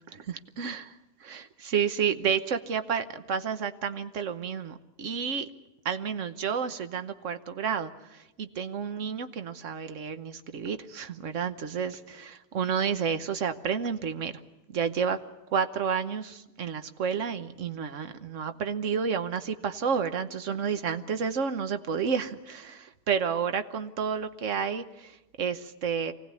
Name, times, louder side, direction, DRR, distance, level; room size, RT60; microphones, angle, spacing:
voice 1, 0.1-0.9 1.2-5.5 5.8-14.4 14.7-15.2 15.5-26.1, right 6 dB, 70° right, 11 dB, 1.4 m, -30 dB
24.5 x 17.5 x 9.6 m, 0.98 s
omnidirectional pair, 1.3 m